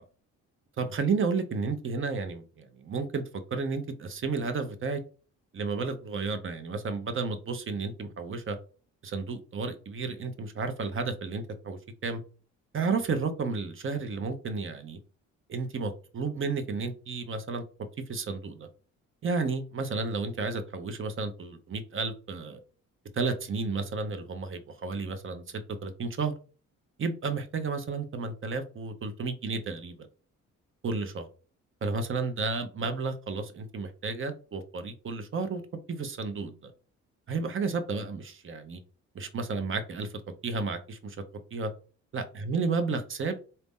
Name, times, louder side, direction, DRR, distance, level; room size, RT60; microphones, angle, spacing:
voice 1, 0.8-3.2 3.5-5.0 5.5-8.6 9.0-12.2 12.7-15.0 15.5-17.6 18.1-18.7 19.2-22.6 23.1-26.3 27.0-30.1 30.8-31.3 31.8-35.6 35.9-36.7 37.3-38.8 39.1-40.1 40.4-41.2 41.5-41.7 42.1-43.4, right 4 dB, 40° right, 8 dB, 0.9 m, -32 dB
4.1 x 2.8 x 3.6 m, 0.37 s
cardioid pair, 90°, 30 cm